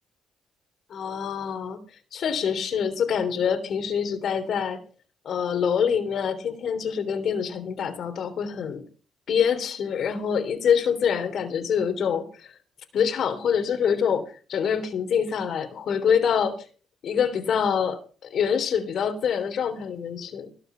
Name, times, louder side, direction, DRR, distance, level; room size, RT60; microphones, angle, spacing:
voice 1, 0.9-1.8 2.1-4.8 5.2-8.8 9.3-12.6 12.9-14.2 14.5-16.5 17.0-18.0 18.3-20.5, left 7 dB, 65° left, 9 dB, 3.3 m, -25 dB
18.0 x 6.9 x 6.9 m, 0.37 s
cardioid pair, 90°, 0 cm